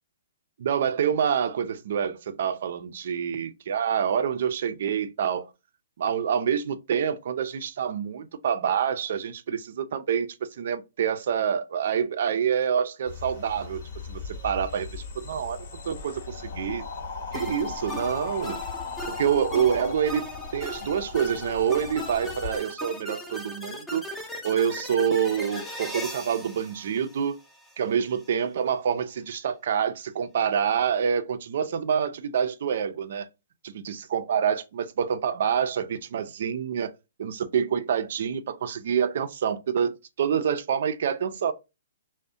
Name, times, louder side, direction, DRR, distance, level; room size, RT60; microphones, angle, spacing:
voice 1, 0.6-5.5 6.0-13.8 14.1-16.8 17.3-18.6 19.1-20.3 20.5-24.0 24.4-27.3 27.8-33.3 33.6-36.9 37.2-41.5, right 8 dB, 60° right, 0.3 m, -27 dB
sound 1, 13.1-22.6, left 5 dB, 60° left, 1.0 m, -37 dB
sound 2, 17.3-27.7, equal, 5° left, 0.5 m, -38 dB
2.4 x 2.0 x 2.5 m
hypercardioid pair, 140°, 0 cm